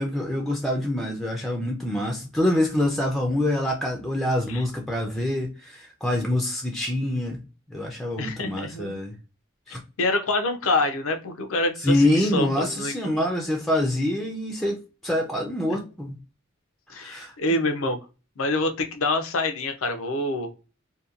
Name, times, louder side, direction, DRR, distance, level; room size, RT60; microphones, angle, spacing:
voice 1, 0.0-7.4 7.7-9.2 9.7-9.8 11.8-16.2 16.9-17.3, left 1 dB, ahead, 1 dB, 0.4 m, -25 dB
voice 2, 8.2-9.0 9.7-13.2 16.9-18.0 18.4-20.5, left 2 dB, 75° left, 7 dB, 0.5 m, -26 dB
2.8 x 2.2 x 2.4 m, 0.32 s
head